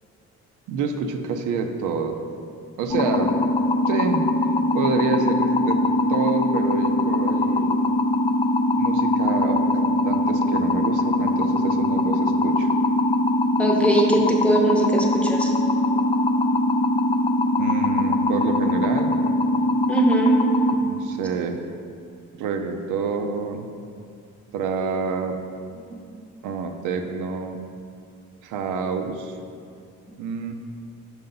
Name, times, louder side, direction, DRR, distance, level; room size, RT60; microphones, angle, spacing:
voice 1, 0.7-2.2 2.8-3.3 3.9-4.3 4.7-5.8 6.1-7.8 8.8-12.7 17.6-19.1 20.8-21.6 22.3-23.7 24.5-25.4 26.4-27.6 28.4-29.4 30.2-30.5, right 5 dB, 90° right, 5 dB, 0.5 m, -28 dB
sound 1, 2.9-20.7, left 1 dB, 20° left, 0.3 m, -21 dB
voice 2, 13.6-15.5 19.9-20.4 20.9-21.0, right 1 dB, 5° left, -1 dB, 0.8 m, -21 dB
5.4 x 4.8 x 3.8 m, 2.3 s
cardioid pair, 90°, 30 cm